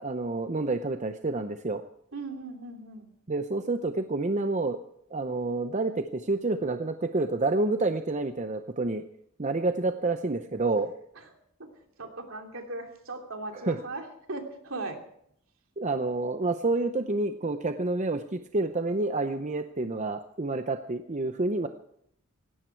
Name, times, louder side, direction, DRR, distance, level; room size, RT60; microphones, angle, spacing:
voice 1, 0.0-1.8 3.3-4.8 5.1-9.0 9.4-10.9 13.5-13.8 15.8-21.7, right 2 dB, 35° right, 8 dB, 0.7 m, -28 dB
voice 2, 2.1-3.1 11.1-11.2 12.0-15.0, right 2 dB, 70° right, 4 dB, 2.8 m, -38 dB
17.5 x 16.5 x 4.6 m, 0.70 s
head